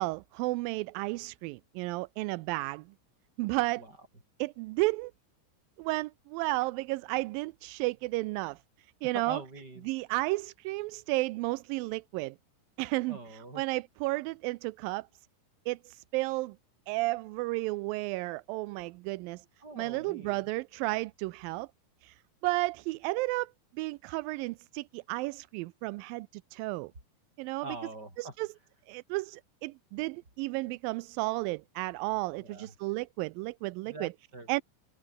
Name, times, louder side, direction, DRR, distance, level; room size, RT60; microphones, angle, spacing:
voice 1, 0.0-2.9 3.4-3.8 4.4-5.1 5.8-8.6 9.0-9.4 9.8-12.4 12.8-15.1 15.7-16.6 16.9-19.5 19.8-21.7 22.0-22.2 22.4-26.9 27.4-27.7 28.2-28.5 28.9-34.1 34.5-34.6, right 21 dB, 85° right, 2.3 m, -33 dB
voice 2, 9.1-9.9 13.1-13.6 19.6-20.5 27.6-28.3 32.4-32.7 33.9-34.5, right 2 dB, 25° right, 8.6 m, -44 dB
open air
omnidirectional pair, 4.0 m